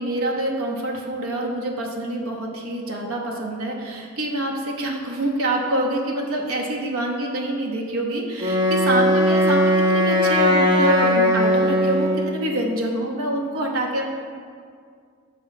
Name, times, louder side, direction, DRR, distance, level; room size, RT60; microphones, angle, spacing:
voice 1, 0.0-14.1, right 1 dB, 65° right, 1 dB, 0.8 m, -26 dB
Wind instrument woodwind instrument, 8.4-12.4, equal, 20° right, 0.7 m, -19 dB
6.8 x 3.1 x 5.7 m, 2.2 s
head